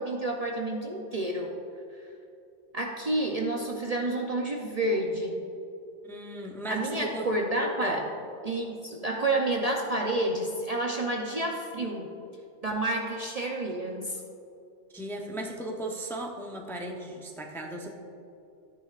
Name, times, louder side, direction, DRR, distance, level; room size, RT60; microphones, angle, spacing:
voice 1, 0.0-1.5 2.7-5.5 6.7-8.1 8.4-12.1 12.6-14.2, right 1 dB, 40° right, 0 dB, 0.7 m, -29 dB
voice 2, 6.1-7.3 7.8-8.0 14.9-17.9, right 1 dB, ahead, 0 dB, 0.6 m, -36 dB
13.5 x 9.4 x 2.5 m, 2.7 s
omnidirectional pair, 1.2 m